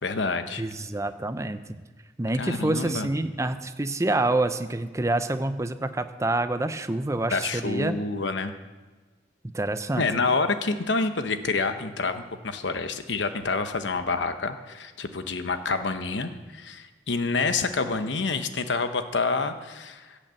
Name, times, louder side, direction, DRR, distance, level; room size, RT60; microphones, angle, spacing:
voice 1, 0.0-0.6 2.4-3.1 7.3-8.5 10.0-20.2, left 4 dB, 85° left, 9 dB, 0.9 m, -28 dB
voice 2, 0.6-1.8 2.2-8.0 9.5-10.1, right 2 dB, 15° right, 11 dB, 0.5 m, -27 dB
16.0 x 6.5 x 7.6 m, 1.3 s
head